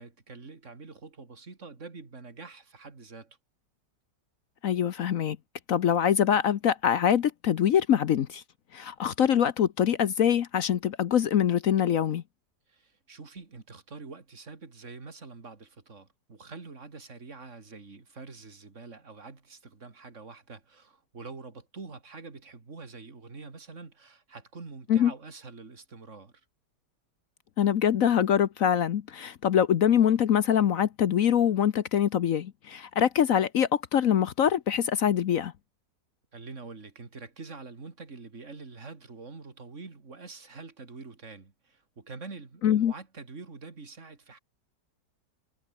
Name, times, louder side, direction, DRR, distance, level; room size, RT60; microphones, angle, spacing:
voice 1, 0.0-3.4 12.7-26.3 36.3-44.4, right 4 dB, 40° right, 3.2 m, -45 dB
voice 2, 4.6-5.4 5.7-8.4 8.7-12.2 24.9-25.1 27.6-35.5 42.6-42.9, left 9 dB, 60° left, 1.1 m, -24 dB
omnidirectional pair, 1.9 m